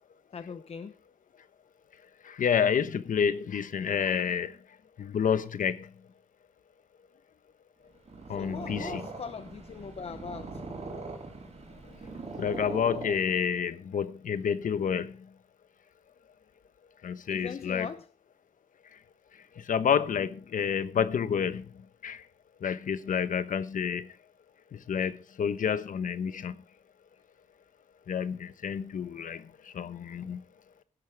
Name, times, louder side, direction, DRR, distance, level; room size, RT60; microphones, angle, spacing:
voice 1, 0.3-0.9 8.3-10.6 17.3-18.1, left 5 dB, 45° left, 0.8 m, -40 dB
voice 2, 2.4-4.5 5.0-5.7 8.3-9.0 12.4-15.1 17.0-17.9 19.7-21.6 22.0-22.2 22.6-24.0 24.9-25.1 25.4-26.5 28.1-29.4 29.8-30.4, left 7 dB, 70° left, 1.1 m, -29 dB
Purr, 7.9-13.6, right 3 dB, 50° right, 5.0 m, -41 dB
17.0 x 12.0 x 3.5 m
wide cardioid pair, 130°, 14 cm